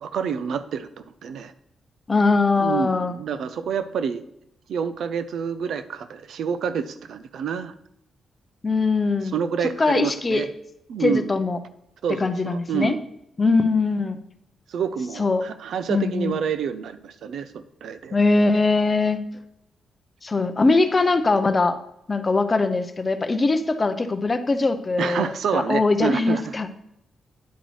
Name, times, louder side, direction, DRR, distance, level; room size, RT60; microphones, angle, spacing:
voice 1, 0.0-0.9 1.2-1.5 2.6-4.2 4.7-7.7 9.3-10.5 10.9-11.3 12.0-13.0 14.7-18.2 25.0-26.7, right 7 dB, 75° right, 12 dB, 0.5 m, -28 dB
voice 2, 2.1-3.1 8.6-9.3 9.8-10.4 11.0-11.6 12.2-13.0 13.4-14.2 15.2-15.4 15.9-16.4 18.1-19.2 20.2-21.8 22.1-26.7, left 3 dB, 20° left, 9 dB, 0.6 m, -21 dB
9.4 x 8.1 x 3.1 m, 0.80 s
wide cardioid pair, 170°, 0 cm